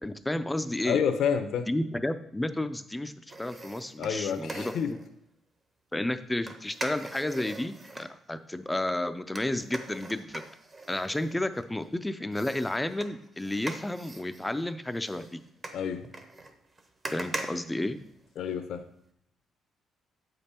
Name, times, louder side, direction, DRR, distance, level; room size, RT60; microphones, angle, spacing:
voice 1, 0.0-1.0 1.7-5.0 5.9-10.4 10.9-15.4 17.1-18.0, left 1 dB, 10° left, 11 dB, 0.4 m, -32 dB
voice 2, 0.8-1.7 4.0-4.9 15.7-16.1 18.4-18.8, left 7 dB, 70° left, 9 dB, 0.7 m, -29 dB
sound 1, 3.3-5.1 6.5-8.1 9.3-11.9 12.3-18.5 18.9-19.0, right 2 dB, 25° right, 0.7 m, -42 dB
7.9 x 5.3 x 4.3 m, 0.72 s
cardioid pair, 140°, 0 cm